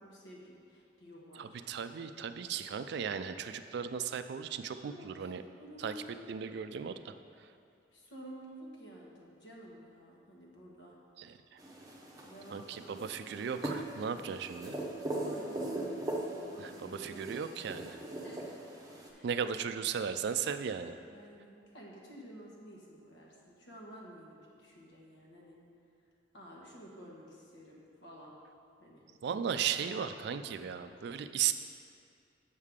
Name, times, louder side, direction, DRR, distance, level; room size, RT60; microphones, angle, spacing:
voice 1, 0.0-1.6 4.8-5.3 5.6-6.5 7.9-11.0 12.2-13.6 15.2-17.4 18.2-18.8 19.1-19.3 21.1-25.6 26.3-28.4 28.8-29.0 29.8-30.1, equal, 75° left, -3 dB, 1.3 m, -52 dB
voice 2, 1.4-5.4 5.8-5.9 6.3-7.1 11.2-11.3 11.5-11.6 12.5-14.8 16.6-18.0 19.2-20.9 29.2-31.5, right 7 dB, 60° right, 10 dB, 0.3 m, -36 dB
sound 1, 11.6-19.1, right 1 dB, 20° right, 0.7 m, -40 dB
7.3 x 6.5 x 3.6 m, 2.4 s
head